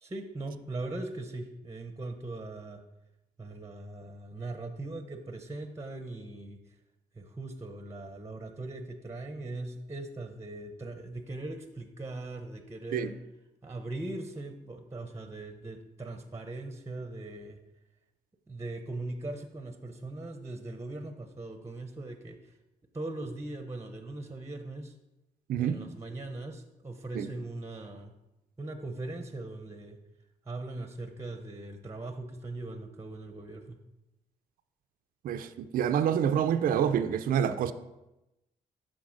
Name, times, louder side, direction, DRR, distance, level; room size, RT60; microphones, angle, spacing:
voice 1, 0.0-2.8 3.4-6.6 7.2-13.2 13.6-17.6 18.5-22.5 22.9-24.9 25.6-28.1 28.6-30.0 30.5-33.7, right 2 dB, 15° right, 0.7 m, -40 dB
voice 2, 25.5-25.8 27.1-27.3 35.2-37.7, right 8 dB, 60° right, 0.4 m, -27 dB
10.5 x 3.9 x 2.5 m
supercardioid pair, 50°, 17 cm